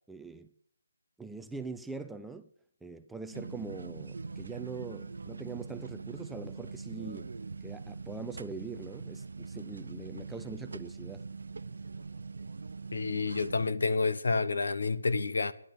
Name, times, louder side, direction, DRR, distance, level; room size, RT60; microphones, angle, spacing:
voice 1, 0.1-0.5 1.2-2.5 2.8-7.3 7.6-11.2, right 4 dB, 5° right, 0.5 m, -43 dB
sound 1, 3.3-13.7, right 4 dB, 65° right, 0.6 m, -42 dB
voice 2, 12.9-15.5, left 4 dB, 65° left, 1.1 m, -29 dB
12.0 x 11.0 x 6.2 m
figure-of-eight pair, 150°, 0 cm